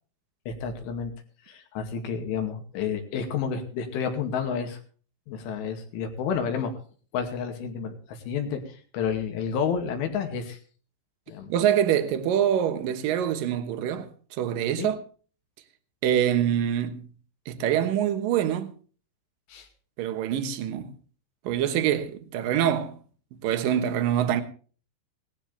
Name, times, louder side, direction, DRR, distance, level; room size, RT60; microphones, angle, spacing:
voice 1, 0.5-1.1 1.4-4.8 5.3-6.8 7.1-10.6 11.3-11.5 14.8-14.9 19.5-19.7, left 6 dB, 80° left, 4.8 m, -30 dB
voice 2, 11.5-15.0 16.0-17.0 17.5-18.7 20.0-20.9 21.4-23.0 23.4-24.4, right 10 dB, 65° right, 2.3 m, -25 dB
18.5 x 15.0 x 3.4 m
omnidirectional pair, 5.5 m